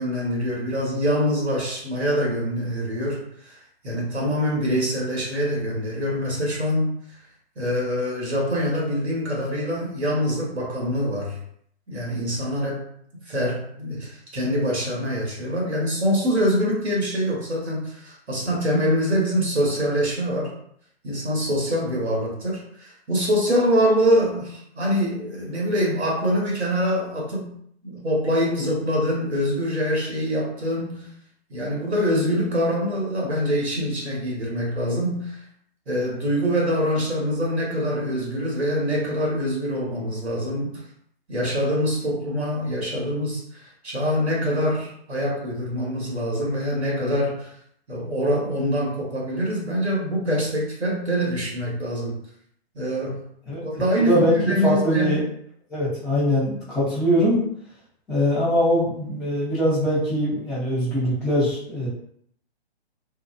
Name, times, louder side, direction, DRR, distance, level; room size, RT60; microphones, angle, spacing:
voice 1, 0.0-3.6 3.8-6.9 7.6-11.4 11.9-12.8 13.3-20.5 21.0-27.5 27.8-31.1 31.5-35.4 35.9-40.8 41.3-47.5 47.9-52.1 52.7-53.2 53.5-55.2, equal, 80° right, -3 dB, 1.1 m, -24 dB
voice 2, 54.0-55.2 55.7-57.4 58.1-61.9, equal, 5° left, -16 dB, 0.5 m, -22 dB
2.6 x 2.1 x 2.4 m, 0.66 s
figure-of-eight pair, 130°, 32 cm